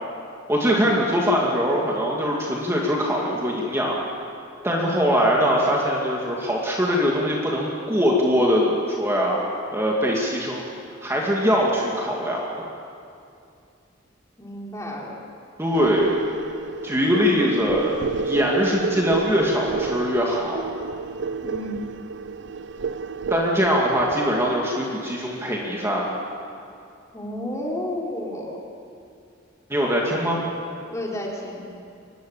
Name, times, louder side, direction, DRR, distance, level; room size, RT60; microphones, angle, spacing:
voice 1, 0.5-4.0 4.6-9.4 9.7-10.6 11.0-12.7 15.6-16.2 16.8-20.6 23.3-26.1 29.7-30.4, equal, 15° right, -3 dB, 2.4 m, -22 dB
voice 2, 14.4-15.2 21.4-21.8 27.1-28.5 30.9-31.6, left 1 dB, 15° left, -2 dB, 3.6 m, -31 dB
sound 1, 15.7-24.7, right 5 dB, 65° right, 0.5 m, -31 dB
24.5 x 20.0 x 7.4 m, 2.5 s
head